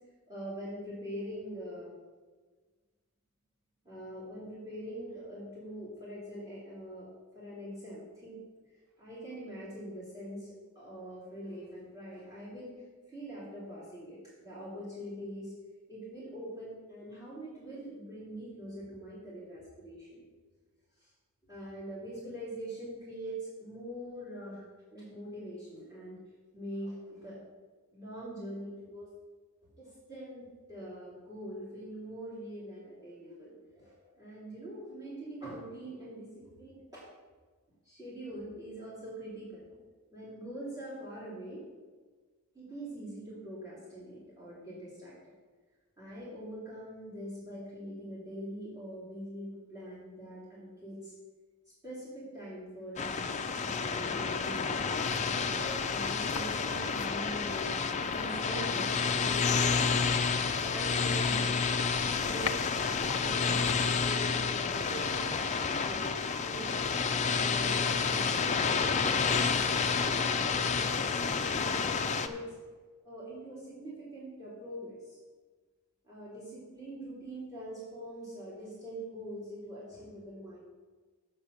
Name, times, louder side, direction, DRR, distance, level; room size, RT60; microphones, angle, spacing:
voice 1, 0.3-1.9 3.8-8.4 9.0-12.7 13.1-15.5 15.9-20.2 21.0-21.1 21.5-24.6 24.9-26.2 26.5-27.4 27.9-29.1 29.8-37.0 37.8-39.6 40.1-41.6 42.5-45.1 46.0-51.1 51.8-54.8 55.4-57.8 58.1-60.2 60.5-61.7 62.2-66.7 67.2-72.5 73.0-75.2 76.0-80.6, equal, 15° right, -9 dB, 3.3 m, -43 dB
sound 1, 53.0-72.3, left 5 dB, 30° left, 0.5 m, -30 dB
sound 2, 53.3-66.4 66.7-66.8, left 6 dB, 80° left, 0.5 m, -46 dB
8.5 x 6.1 x 6.6 m, 1.4 s
head